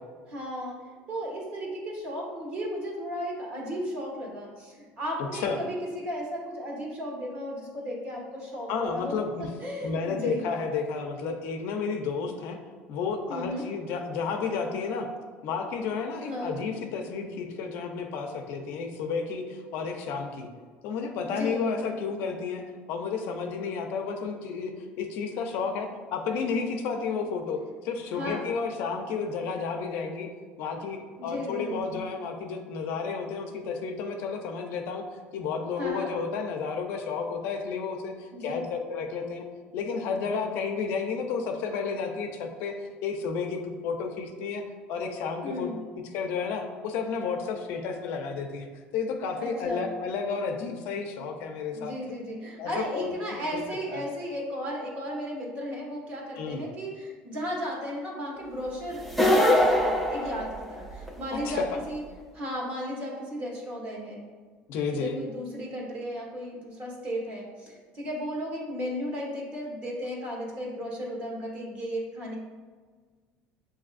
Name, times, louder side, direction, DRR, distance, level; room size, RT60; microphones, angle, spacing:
voice 1, 0.3-9.2 9.6-10.5 13.3-13.7 16.3-16.6 21.3-21.7 28.1-28.4 31.2-32.0 35.8-36.1 38.3-38.7 45.4-45.8 49.4-49.9 51.7-62.0 62.3-64.2 64.9-72.4, equal, 35° right, -3 dB, 1.2 m, -35 dB
voice 2, 5.2-5.6 8.7-9.5 9.8-12.6 12.9-15.1 15.4-20.5 20.8-22.6 22.9-27.6 27.8-30.3 30.6-35.0 35.3-39.4 39.7-45.7 46.0-48.7 48.9-51.9 52.6-53.1 53.5-53.6 53.9-54.0 56.4-56.6 61.3-61.7 64.7-65.2, left 5 dB, 65° left, 4 dB, 0.5 m, -31 dB
sound 1, 59.1-61.1, left 1 dB, ahead, 0.4 m, -22 dB
7.1 x 2.6 x 2.5 m, 1.5 s
cardioid pair, 155°, 4 cm